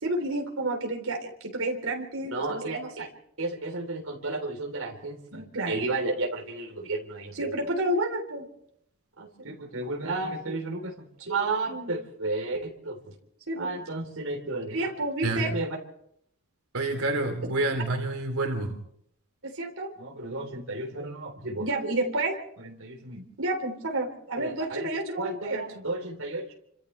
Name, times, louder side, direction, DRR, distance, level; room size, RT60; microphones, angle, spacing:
voice 1, 0.0-3.1 3.4-8.5 9.2-13.1 13.5-15.8 19.4-26.5, right 2 dB, 75° right, 1 dB, 3.9 m, -31 dB
voice 2, 16.7-18.7, right 2 dB, 90° right, 2 dB, 3.5 m, -28 dB
29.5 x 26.0 x 3.4 m, 0.71 s
head